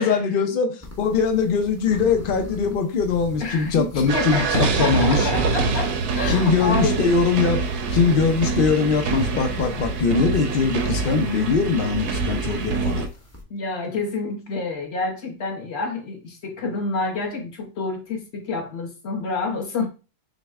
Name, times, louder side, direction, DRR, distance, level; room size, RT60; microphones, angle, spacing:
voice 1, 0.0-5.3 6.3-7.6 7.9-13.1, left 5 dB, 90° left, 0.4 m, -21 dB
sound 1, 0.8-13.4, left 1 dB, 15° left, 0.6 m, -39 dB
voice 2, 3.4-7.1 13.5-19.9, left 3 dB, 45° left, 1.1 m, -28 dB
sound 2, 4.1-13.1, right 4 dB, 75° right, 1.1 m, -25 dB
6.3 x 2.2 x 3.5 m
omnidirectional pair, 1.8 m